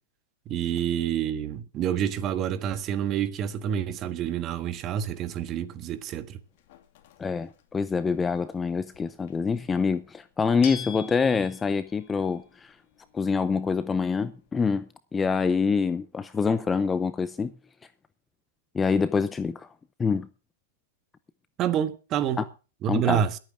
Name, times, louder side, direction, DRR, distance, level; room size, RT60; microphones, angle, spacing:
voice 1, 0.5-6.4 21.6-22.4 22.8-23.4, right 9 dB, 25° right, 1.4 m, -28 dB
sound 1, 5.1-14.5, left 9 dB, 50° left, 2.3 m, -47 dB
voice 2, 7.2-12.7 13.1-17.5 18.7-19.7 20.0-20.3 22.4-22.5 22.9-23.2, left 5 dB, 10° left, 0.6 m, -26 dB
21.5 x 9.0 x 3.7 m
hypercardioid pair, 150°, 0 cm